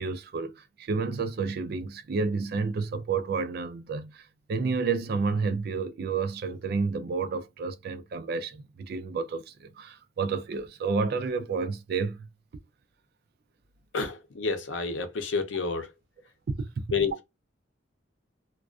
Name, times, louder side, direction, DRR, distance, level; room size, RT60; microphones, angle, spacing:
voice 1, 0.0-4.2 4.5-12.3 16.5-16.8, right 4 dB, 55° right, 0.3 m, -30 dB
voice 2, 13.9-15.9 16.9-17.2, left 4 dB, 90° left, 0.6 m, -29 dB
2.4 x 2.3 x 2.3 m
head